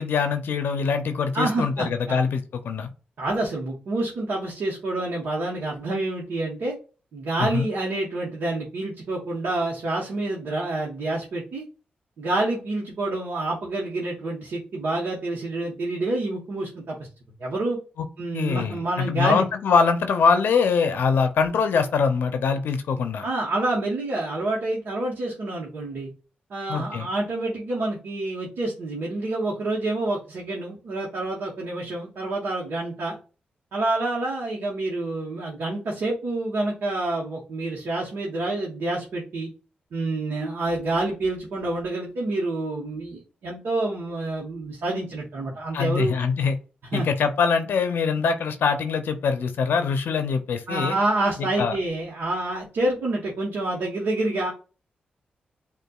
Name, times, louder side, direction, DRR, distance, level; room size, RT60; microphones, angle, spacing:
voice 1, 0.0-2.9 7.4-7.7 18.0-18.1 18.3-23.2 26.7-27.1 45.7-46.6 46.9-51.0 51.6-51.8, left 5 dB, 80° left, 8 dB, 0.5 m, -23 dB
voice 2, 1.3-2.2 3.2-6.8 7.1-11.6 12.2-17.0 17.4-17.8 18.2-19.5 23.2-26.1 26.5-33.2 33.7-39.5 39.9-46.2 46.9-47.1 50.7-54.5, right 2 dB, 80° right, -3 dB, 1.1 m, -28 dB
6.6 x 2.5 x 2.3 m, 0.34 s
cardioid pair, 55°, 3 cm